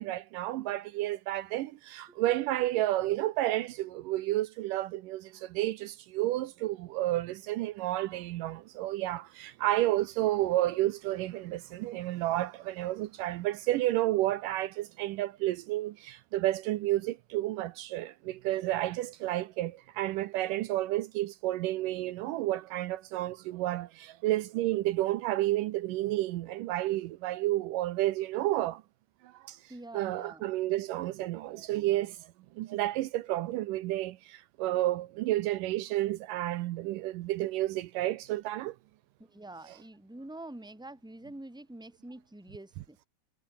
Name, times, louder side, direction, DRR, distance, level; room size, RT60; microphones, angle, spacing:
voice 1, 0.0-28.8 29.3-29.6 29.9-32.3 32.6-38.8, right 15 dB, 80° right, 2.3 m, -31 dB
voice 2, 29.7-30.4 39.2-43.0, right 1 dB, ahead, 3.0 m, -46 dB
omnidirectional pair, 3.9 m